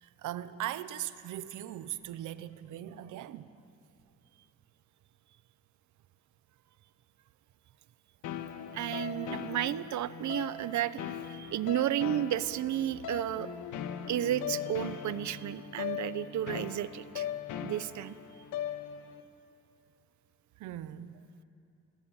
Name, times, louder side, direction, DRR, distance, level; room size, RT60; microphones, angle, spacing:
voice 1, 0.0-3.5 20.6-21.3, right 12 dB, 85° right, 1.1 m, -39 dB
sound 1, 8.2-19.2, left 8 dB, 85° left, 1.7 m, -39 dB
voice 2, 8.7-13.5 14.1-17.3 17.6-18.2, right 12 dB, 70° right, 0.9 m, -32 dB
28.0 x 21.0 x 9.0 m
cardioid pair, 90°, 30 cm